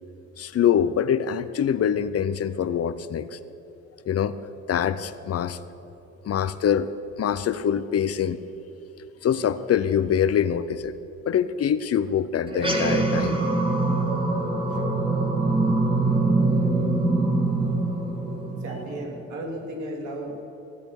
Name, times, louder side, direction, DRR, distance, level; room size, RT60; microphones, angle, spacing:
voice 1, 0.4-3.4 4.1-4.4 4.7-5.6 6.2-6.9 7.2-8.4 9.2-10.9 11.3-13.4 16.6-17.0 18.3-18.4, left 8 dB, 50° left, 13 dB, 0.6 m, -24 dB
sound 1, 12.5-19.2, right 2 dB, 15° right, 1.8 m, -23 dB
voice 2, 18.4-20.5, right 1 dB, 70° right, 0 dB, 3.1 m, -34 dB
16.0 x 8.5 x 7.1 m, 3.0 s
cardioid pair, 90°, 30 cm